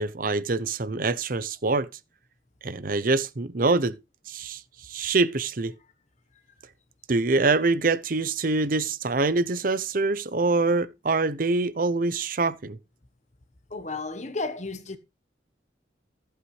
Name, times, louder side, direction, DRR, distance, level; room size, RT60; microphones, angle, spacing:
voice 1, 0.0-1.9 2.6-4.0 4.3-5.7 7.1-12.8, right 3 dB, 50° right, 0.7 m, -25 dB
voice 2, 13.7-15.0, left 3 dB, 40° left, 1.1 m, -33 dB
14.5 x 8.1 x 3.2 m
head